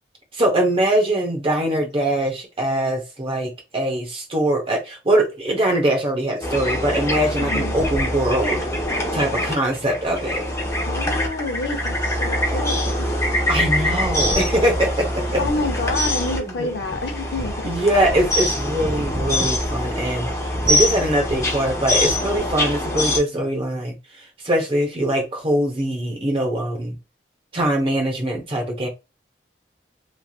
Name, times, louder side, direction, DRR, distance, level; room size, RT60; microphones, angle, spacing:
voice 1, 0.3-8.6 9.1-10.5 13.5-15.4 16.4-16.7 17.6-20.3 20.7-27.0 27.5-28.9, right 1 dB, 30° right, 0.9 m, -22 dB
sound 1, 6.4-23.2, left 1 dB, 15° left, 0.7 m, -24 dB
voice 2, 7.4-7.7 10.8-13.1 15.4-17.7, left 3 dB, 70° left, 0.6 m, -28 dB
3.1 x 2.6 x 2.3 m
head